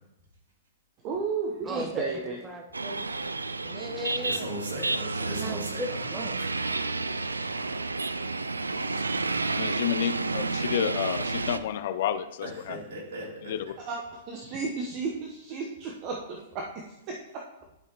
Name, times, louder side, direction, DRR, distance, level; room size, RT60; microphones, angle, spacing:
voice 1, 1.0-2.4 13.9-17.4, right 4 dB, 40° right, -1 dB, 1.0 m, -33 dB
voice 2, 1.6-2.1 2.4-3.1 3.6-4.5 5.0-6.3, equal, 15° right, 2 dB, 1.1 m, -37 dB
sound 1, 2.7-11.6, right 3 dB, 80° right, 0.3 m, -31 dB
voice 3, 4.2-6.0 6.4-6.5 8.8-9.0 12.4-13.5, right 1 dB, 60° right, -4 dB, 3.2 m, -38 dB
voice 4, 9.6-12.8 13.4-13.7, left 10 dB, 55° left, 13 dB, 0.5 m, -30 dB
11.0 x 5.7 x 3.0 m, 0.85 s
figure-of-eight pair, 105°, 0 cm